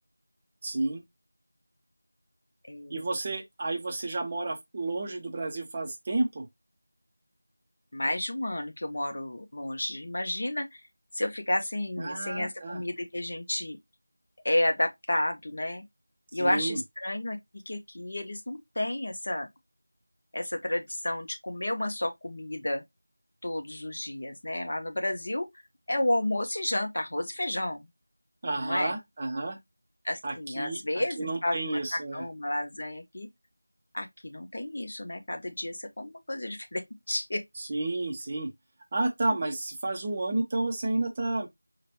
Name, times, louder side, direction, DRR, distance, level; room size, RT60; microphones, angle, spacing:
voice 1, 0.6-1.0 2.9-6.5 12.0-12.8 16.3-16.8 28.4-29.6 30.2-32.2 37.6-38.5 38.9-41.5, right 2 dB, 20° right, 0.6 m, -31 dB
voice 2, 2.7-3.0 7.9-10.8 11.1-13.8 14.4-15.8 16.3-17.4 17.7-19.5 20.3-22.8 23.4-25.5 25.9-27.9 28.6-28.9 30.0-33.3 33.9-37.4, left 1 dB, 45° left, 0.8 m, -31 dB
4.8 x 2.2 x 3.0 m
figure-of-eight pair, 175°, 0 cm